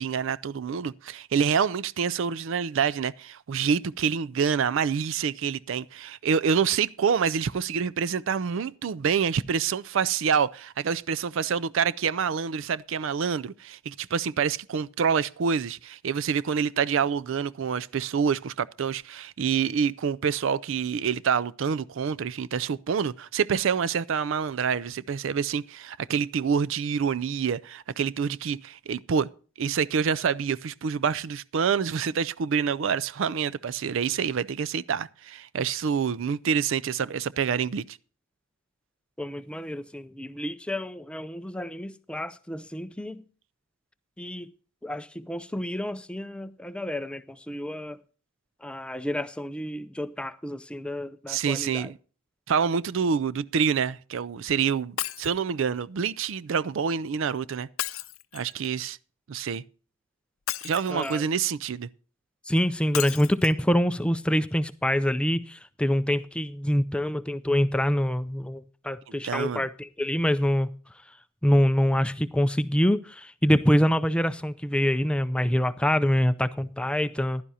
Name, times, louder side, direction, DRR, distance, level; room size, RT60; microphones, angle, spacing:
voice 1, 0.0-29.3 29.6-38.0 51.3-52.0 52.5-57.7 58.3-59.0 59.3-59.6 60.6-61.9 69.2-69.6, right 6 dB, 65° right, 0.4 m, -27 dB
voice 2, 39.2-43.2 44.2-44.5 44.8-48.0 48.6-51.9 60.9-61.2 62.5-70.7 71.4-77.4, equal, 5° left, 0.4 m, -26 dB
Shatter, 55.0-55.4 57.8-58.7 60.5-61.3 62.9-63.5 64.2-64.3 64.5-64.6, left 13 dB, 75° left, 0.6 m, -34 dB
15.0 x 11.5 x 2.8 m
head